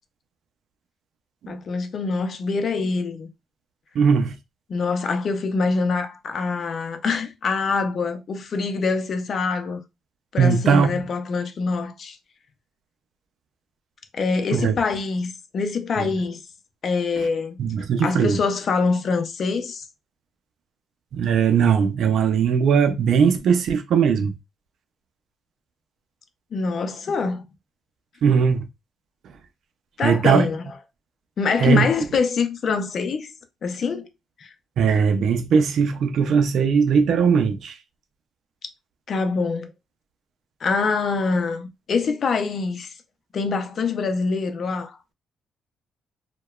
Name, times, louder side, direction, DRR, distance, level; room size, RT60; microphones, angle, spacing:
voice 1, 1.5-3.3 4.7-9.8 10.3-12.2 14.1-16.4 16.8-17.6 18.0-19.8 26.5-27.4 30.0-30.6 31.4-33.3 33.6-34.1 34.4-34.5 39.1-39.7 40.6-42.9 43.3-45.0, left 4 dB, 55° left, 0.5 m, -24 dB
voice 2, 3.9-4.4 10.4-11.0 14.5-14.8 17.6-18.4 21.1-24.3 28.2-28.7 30.0-30.5 31.6-31.9 34.8-37.8, right 6 dB, 70° right, 0.5 m, -19 dB
2.8 x 2.2 x 2.3 m
cardioid pair, 90°, 0 cm